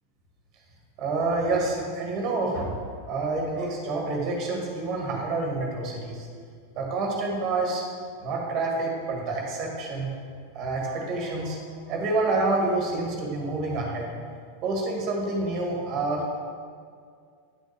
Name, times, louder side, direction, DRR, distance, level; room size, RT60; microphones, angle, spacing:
voice 1, 1.0-2.8 3.1-6.3 6.8-7.8 8.2-10.1 10.5-11.6 11.9-14.1 14.6-16.4, right 3 dB, 35° right, 0 dB, 1.8 m, -28 dB
9.4 x 6.2 x 3.5 m, 2.2 s
figure-of-eight pair, 90°, 0 cm